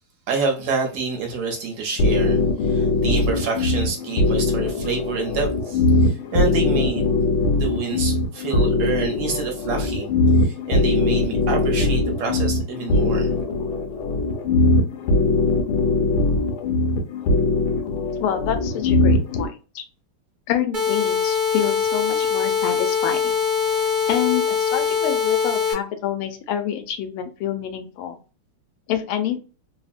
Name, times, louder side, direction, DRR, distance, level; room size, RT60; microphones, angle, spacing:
voice 1, 0.3-7.1 7.5-10.1 10.4-13.3, right 4 dB, 70° right, 1.3 m, -27 dB
sound 1, 2.0-19.5, left 2 dB, 70° left, 1.0 m, -21 dB
voice 2, 18.2-19.9 20.5-23.3 24.1-28.2 28.9-29.4, left 9 dB, 85° left, 1.5 m, -27 dB
sound 2, 20.7-25.7, left 6 dB, 35° right, 0.9 m, -22 dB
3.5 x 2.0 x 2.4 m
omnidirectional pair, 2.3 m